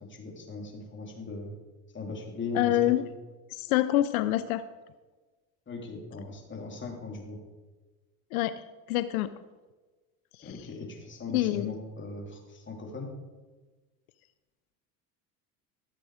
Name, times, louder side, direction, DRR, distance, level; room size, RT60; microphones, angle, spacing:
voice 1, 0.1-1.5 1.9-3.0 5.7-7.4 10.4-13.1, left 3 dB, 25° left, 0 dB, 3.2 m, -39 dB
voice 2, 2.5-3.0 3.5-4.6 8.3-9.3 10.4-10.5 11.3-11.8, left 14 dB, 90° left, 12 dB, 0.6 m, -26 dB
13.5 x 7.7 x 4.9 m, 1.3 s
supercardioid pair, 100°, 42 cm